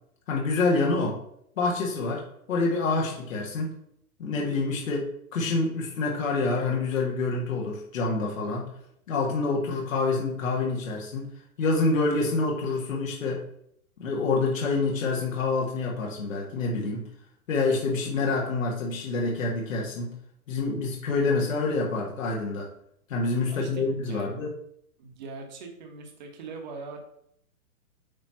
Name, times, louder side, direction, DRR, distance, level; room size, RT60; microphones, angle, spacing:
voice 1, 0.3-1.2 1.6-3.7 4.2-8.7 9.1-11.3 11.6-13.4 14.0-17.1 17.5-20.1 20.5-22.7 23.1-24.5, left 3 dB, 60° left, -2 dB, 1.7 m, -27 dB
voice 2, 23.5-24.3 25.0-27.1, right 4 dB, 30° right, 3 dB, 1.2 m, -42 dB
8.6 x 3.1 x 5.5 m, 0.72 s
hypercardioid pair, 175°, 44 cm